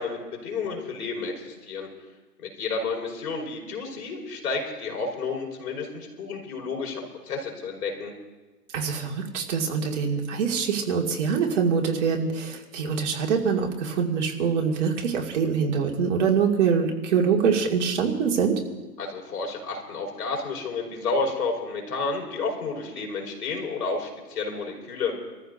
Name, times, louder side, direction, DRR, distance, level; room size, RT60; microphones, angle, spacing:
voice 1, 0.0-1.9 2.4-8.1 19.0-25.1, left 4 dB, 65° left, 0 dB, 5.7 m, -31 dB
voice 2, 8.7-18.6, right 6 dB, 45° right, 1 dB, 2.3 m, -24 dB
27.5 x 14.5 x 2.7 m, 1.2 s
hypercardioid pair, 140°, 49 cm